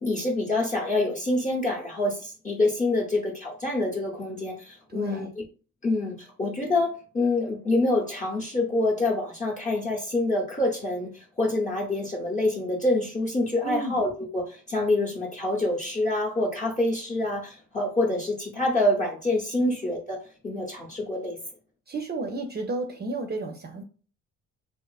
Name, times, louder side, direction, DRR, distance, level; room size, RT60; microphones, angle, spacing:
voice 1, 0.0-5.4 5.8-20.2 20.4-21.4, left 2 dB, 25° left, 0.7 m, -26 dB
voice 2, 4.9-5.3 13.6-14.0 19.6-19.7 21.9-23.8, right 2 dB, 35° right, 0.5 m, -32 dB
2.5 x 2.4 x 2.3 m
cardioid pair, 75°, 30 cm